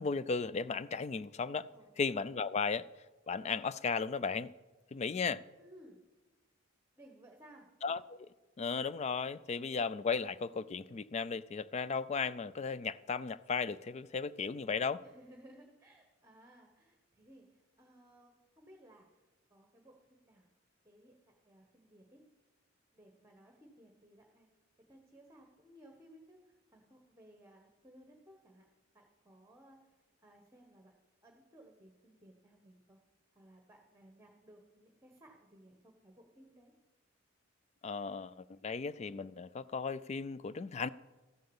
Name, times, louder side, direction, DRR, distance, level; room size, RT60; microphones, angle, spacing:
voice 1, 0.0-1.7 2.0-2.8 3.3-4.5 4.9-5.4 7.8-8.3 8.6-15.0 37.8-40.9, left 5 dB, 35° left, 0.3 m, -35 dB
voice 2, 5.6-6.0 7.0-7.7 15.0-19.2 19.5-20.0 20.2-20.5 20.8-22.2 22.9-24.5 24.9-28.6 28.9-29.9 30.2-30.9 31.2-33.0 33.3-36.7, right 1 dB, 15° right, 1.2 m, -60 dB
13.5 x 7.6 x 7.1 m
head